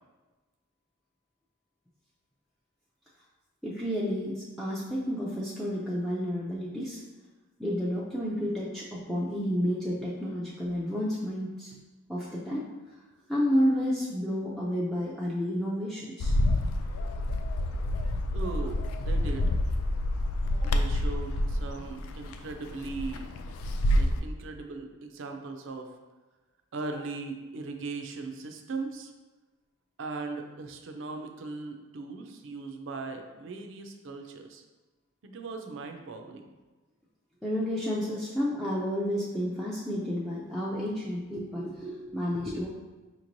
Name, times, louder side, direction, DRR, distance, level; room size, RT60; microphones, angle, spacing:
voice 1, 3.6-7.0 7.6-11.8 12.1-12.6 13.3-16.4 20.6-20.7 37.4-42.7, equal, ahead, -7 dB, 0.3 m, -30 dB
Bird, 16.2-24.2, left 1 dB, 85° left, 0.3 m, -28 dB
voice 2, 18.1-19.6 20.6-23.3 23.9-25.9 26.7-29.1 30.0-34.6 35.2-36.5, right 3 dB, 65° right, 4 dB, 0.4 m, -39 dB
5.0 x 3.0 x 2.6 m, 1.2 s
head